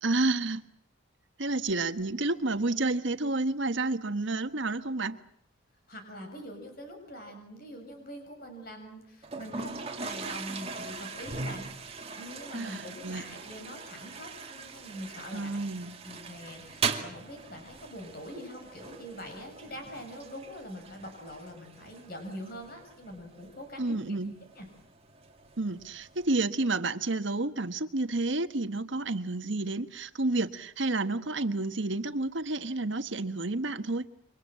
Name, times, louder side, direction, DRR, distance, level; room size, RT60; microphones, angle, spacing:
voice 1, 0.0-0.6 1.4-5.2 12.5-13.2 15.3-16.0 23.8-24.3 25.6-34.0, right 2 dB, 65° right, 1.4 m, -30 dB
voice 2, 5.9-11.7 12.2-15.6 16.0-24.2 24.5-24.7, equal, 45° left, 6.7 m, -44 dB
Toilet flush, 9.2-26.3, right 4 dB, 30° right, 2.3 m, -40 dB
28.5 x 25.0 x 7.6 m
head